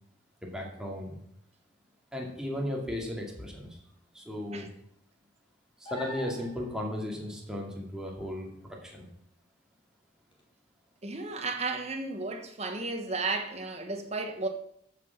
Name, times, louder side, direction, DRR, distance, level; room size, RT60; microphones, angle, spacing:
voice 1, 0.4-1.2 2.1-3.8 4.1-4.7 5.8-9.1, left 1 dB, 5° right, 2.3 m, -36 dB
sound 1, 5.9-6.8 10.3-10.4, left 2 dB, 30° left, 2.7 m, -41 dB
voice 2, 11.0-14.5, right 3 dB, 35° right, 1.4 m, -33 dB
13.5 x 6.1 x 5.8 m
head